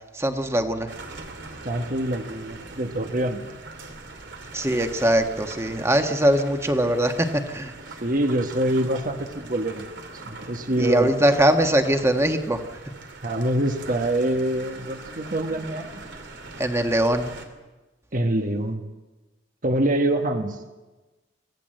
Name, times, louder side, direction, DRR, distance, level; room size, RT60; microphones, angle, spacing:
voice 1, 0.1-0.9 4.5-7.7 10.8-12.6 16.6-17.3, right 1 dB, 15° right, 5 dB, 1.5 m, -21 dB
sound 1, 0.9-17.5, right 3 dB, 80° right, 2.8 m, -41 dB
voice 2, 1.6-3.6 8.0-9.9 10.2-11.2 13.2-15.9 18.1-18.8 19.6-20.6, right 1 dB, 45° right, 5 dB, 1.3 m, -25 dB
25.0 x 15.5 x 7.8 m, 1.2 s
head